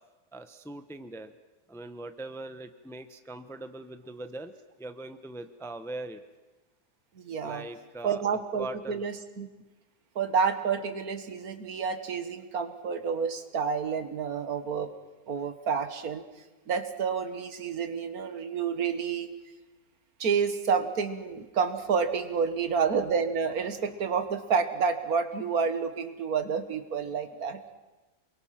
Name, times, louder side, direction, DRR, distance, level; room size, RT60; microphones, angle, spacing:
voice 1, 0.3-1.3 1.7-4.5 4.8-6.2 7.4-8.2 8.6-9.0, right 2 dB, ahead, 9 dB, 0.6 m, -41 dB
voice 2, 7.2-7.6 8.0-9.5 10.2-14.9 15.3-16.2 16.7-19.3 20.2-27.6, right 6 dB, 70° right, 9 dB, 1.8 m, -29 dB
28.0 x 22.5 x 5.9 m, 1.1 s
omnidirectional pair, 1.6 m